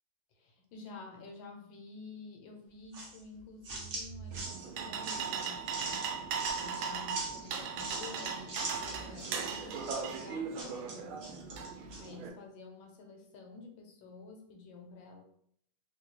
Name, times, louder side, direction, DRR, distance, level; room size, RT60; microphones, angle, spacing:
voice 1, 0.3-6.3 6.5-15.2, left 3 dB, 80° left, 3 dB, 1.4 m, -50 dB
sound 1, 2.9-12.1, right 2 dB, 55° right, 1.2 m, -43 dB
sound 2, 4.3-12.3, right 6 dB, 90° right, 1.4 m, -38 dB
3.7 x 2.7 x 3.0 m, 0.68 s
omnidirectional pair, 2.2 m